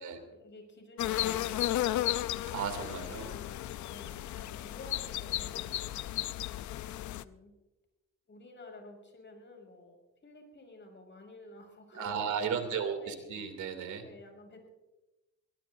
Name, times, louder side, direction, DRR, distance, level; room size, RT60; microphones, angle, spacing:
voice 1, 0.0-2.2 3.0-6.0 6.7-7.5 8.3-10.0 10.2-13.3 14.0-14.7, left 2 dB, 40° left, 3 dB, 5.9 m, -52 dB
sound 1, 1.0-7.2, left 13 dB, 70° left, 0.6 m, -34 dB
voice 2, 2.5-3.4 11.9-14.0, right 7 dB, 75° right, 7 dB, 2.7 m, -35 dB
23.0 x 17.5 x 2.6 m, 1.0 s
cardioid pair, 90°, 30 cm